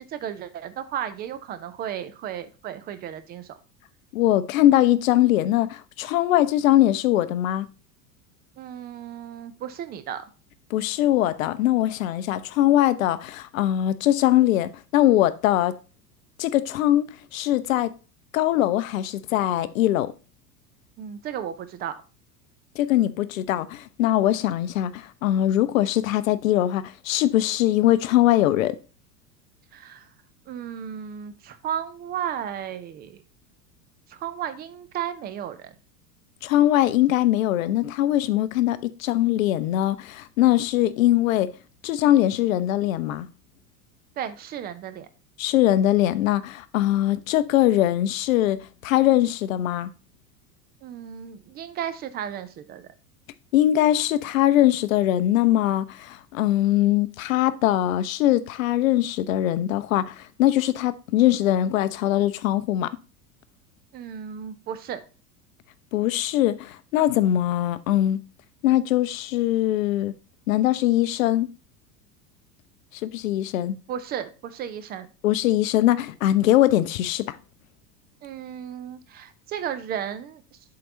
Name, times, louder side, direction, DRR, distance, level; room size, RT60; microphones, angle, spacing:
voice 1, 0.0-3.5 8.6-10.2 21.0-22.0 29.7-30.1 30.5-33.2 34.1-35.7 44.2-45.1 50.8-52.9 63.9-65.0 73.9-75.1 78.2-80.4, right 9 dB, 20° right, 0.5 m, -34 dB
voice 2, 4.1-7.7 10.7-15.8 16.4-17.9 18.3-20.1 22.8-28.8 36.4-41.5 41.8-43.3 45.4-49.9 53.5-62.9 65.9-68.2 68.6-70.1 70.5-71.5 73.0-73.8 75.2-77.4, left 13 dB, 55° left, 0.6 m, -21 dB
7.6 x 3.8 x 4.3 m
figure-of-eight pair, 80°, 49 cm